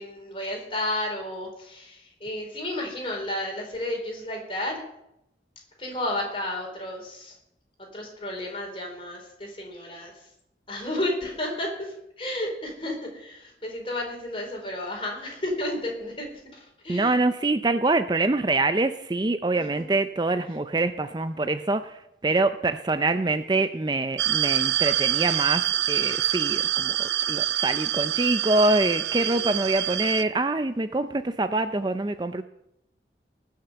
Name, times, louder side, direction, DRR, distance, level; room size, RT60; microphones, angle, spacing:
voice 1, 0.0-4.8 5.8-7.4 7.8-10.3 10.7-17.1 19.5-19.6 29.2-29.6, left 1 dB, 30° left, 1 dB, 4.1 m, -32 dB
voice 2, 16.9-32.4, right 2 dB, 25° right, 10 dB, 0.4 m, -25 dB
sound 1, 24.2-30.2, right 12 dB, 85° right, 0.6 m, -26 dB
19.5 x 6.6 x 6.9 m, 0.81 s
head